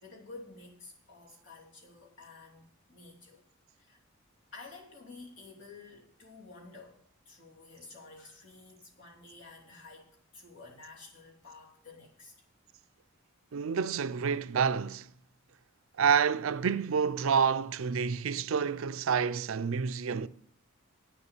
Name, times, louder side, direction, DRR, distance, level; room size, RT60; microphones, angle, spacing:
voice 1, 0.0-3.4 3.8-4.0 4.5-12.4, left 3 dB, 55° left, 2.9 m, -51 dB
voice 2, 13.5-15.1 16.0-20.3, right 6 dB, 75° right, 0.5 m, -28 dB
8.8 x 7.0 x 8.8 m
head